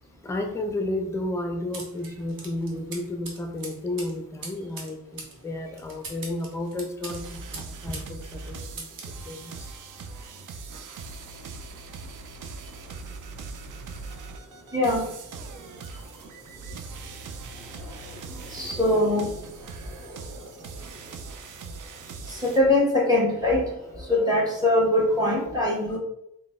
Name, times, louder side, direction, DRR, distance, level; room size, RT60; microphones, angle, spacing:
voice 1, 0.2-8.9 9.3-9.7 25.9-26.0, left 1 dB, 10° left, 5 dB, 0.5 m, -32 dB
sound 1, 1.7-8.1 8.4-9.2, right 3 dB, 85° right, 1.0 m, -42 dB
sound 2, 7.1-22.6, right 4 dB, 65° right, 0.5 m, -41 dB
voice 2, 14.7-15.1 18.5-19.3 22.3-26.0, left 1 dB, 10° right, -3 dB, 1.3 m, -22 dB
3.8 x 2.2 x 3.6 m, 0.82 s
cardioid pair, 80°, 34 cm